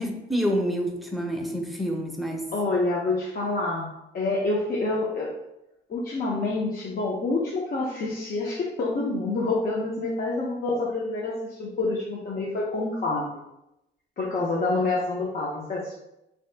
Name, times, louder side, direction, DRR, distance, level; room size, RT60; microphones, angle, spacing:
voice 1, 0.0-2.4, equal, ahead, 1 dB, 0.6 m, -28 dB
voice 2, 2.5-3.9 4.1-5.3 5.9-13.3 14.2-15.9, left 2 dB, 50° left, -4 dB, 0.7 m, -27 dB
3.2 x 2.7 x 3.2 m, 0.89 s
cardioid pair, 90°, 20 cm